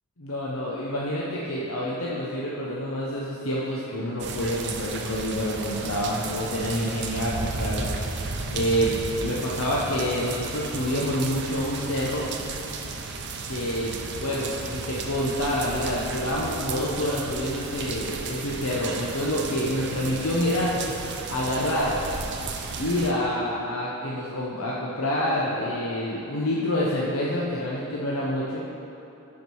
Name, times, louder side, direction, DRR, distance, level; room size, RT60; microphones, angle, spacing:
voice 1, 0.2-12.3 13.5-13.9 14.2-20.9 21.3-21.9 22.8-28.6, equal, 70° left, -5 dB, 0.8 m, -27 dB
sound 1, 4.2-23.1, right 4 dB, 50° right, 0.6 m, -34 dB
10.5 x 4.8 x 4.6 m, 3.0 s
head